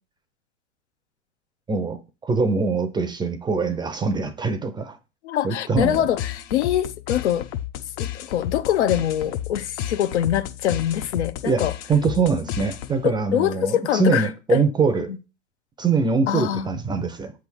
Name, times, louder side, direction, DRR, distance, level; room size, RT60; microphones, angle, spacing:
voice 1, 1.7-5.0 5.4-6.1 11.4-11.6 11.9-15.1 15.8-17.3, right 4 dB, 10° right, 0.7 m, -23 dB
voice 2, 5.2-7.5 8.0-11.7 13.0-14.6 15.1-15.2 16.3-16.7, left 11 dB, 70° left, 0.9 m, -24 dB
sound 1, 5.7-13.2, left 11 dB, 40° left, 0.8 m, -32 dB
7.7 x 3.6 x 6.2 m
hypercardioid pair, 125°, 36 cm